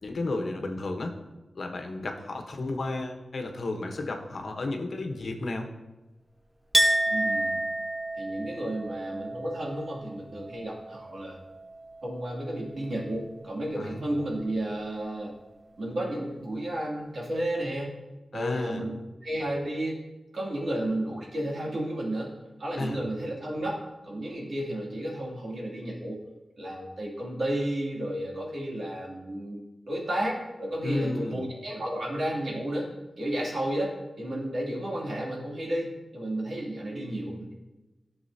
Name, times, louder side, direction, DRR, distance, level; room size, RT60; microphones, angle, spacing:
voice 1, 0.0-1.2 1.5-5.7 13.8-14.0 18.3-18.8 22.8-23.0 30.8-31.4, left 2 dB, 70° left, 4 dB, 1.0 m, -32 dB
Chink clink, 6.7-12.3 12.5-13.4, right 1 dB, 25° right, 1.4 m, -30 dB
voice 2, 7.1-7.6 8.2-11.4 12.0-15.4 15.8-18.0 18.3-20.1 20.3-26.2 26.6-29.6 29.9-37.5, right 1 dB, 70° right, -3 dB, 2.6 m, -32 dB
12.0 x 6.9 x 2.8 m, 1.1 s
cardioid pair, 50°, 0 cm